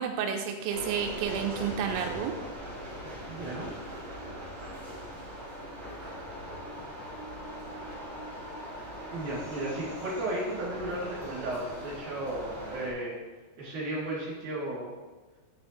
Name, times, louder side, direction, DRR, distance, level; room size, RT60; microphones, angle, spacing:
voice 1, 0.0-2.3, right 7 dB, 90° right, 4 dB, 2.9 m, -31 dB
sound 1, 0.7-12.9, equal, 30° right, 1.4 m, -40 dB
voice 2, 3.3-3.7 9.1-13.2 13.6-14.9, right 1 dB, 50° right, -7 dB, 3.5 m, -34 dB
7.0 x 7.0 x 3.0 m, 1.3 s
omnidirectional pair, 5.2 m